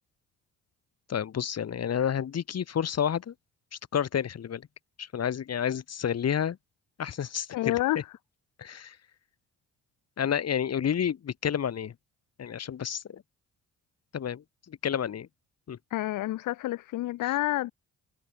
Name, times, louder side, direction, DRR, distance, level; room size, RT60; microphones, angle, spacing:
voice 1, 1.1-3.3 3.9-4.7 5.0-6.6 7.0-7.8 8.6-9.0 10.2-11.9 12.4-13.2 14.1-15.3 15.7-15.8, left 8 dB, 55° left, 6.3 m, -30 dB
voice 2, 7.5-8.0 15.9-17.7, left 16 dB, 90° left, 3.0 m, -28 dB
cardioid pair, 90°, 30 cm